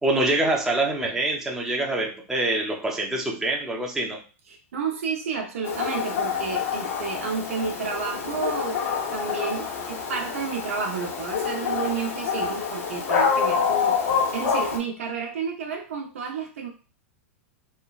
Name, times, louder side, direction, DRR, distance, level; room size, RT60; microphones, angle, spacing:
voice 1, 0.0-4.2, right 2 dB, 5° right, -2 dB, 0.5 m, -25 dB
voice 2, 4.5-8.8 9.1-16.7, right 5 dB, 80° right, 2 dB, 0.8 m, -31 dB
Dog, 5.6-14.8, left 6 dB, 80° left, 0.9 m, -27 dB
3.1 x 2.1 x 2.3 m, 0.35 s
hypercardioid pair, 130°, 7 cm